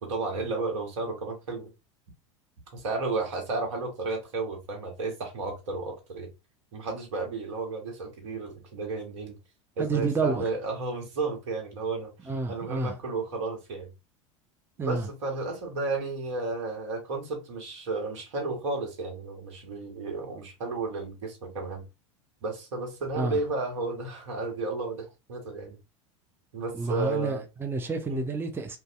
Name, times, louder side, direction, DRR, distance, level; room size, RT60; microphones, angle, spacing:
voice 1, 0.0-1.7 2.7-6.3 6.7-9.4 9.8-12.1 12.5-13.9 14.8-21.9 22.4-25.8 26.5-27.5 28.1-28.3, right 3 dB, 75° right, 1.1 m, -33 dB
voice 2, 9.8-10.4 12.2-12.9 14.8-15.1 23.2-23.4 26.7-28.8, right 4 dB, 15° right, 0.5 m, -29 dB
2.6 x 2.2 x 2.3 m
hypercardioid pair, 85°, 17 cm